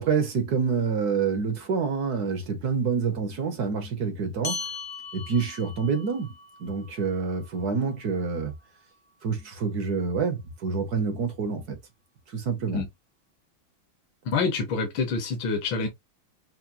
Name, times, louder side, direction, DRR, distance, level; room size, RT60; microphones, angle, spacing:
voice 1, 0.0-4.6 5.1-6.3 6.6-8.5 9.2-11.8 12.3-12.8, right 5 dB, 55° right, 1.3 m, -27 dB
sound 1, 4.4-9.2, left 5 dB, 50° left, 0.6 m, -40 dB
voice 2, 14.2-15.9, left 4 dB, 70° left, 1.7 m, -26 dB
5.9 x 2.1 x 2.6 m
omnidirectional pair, 2.3 m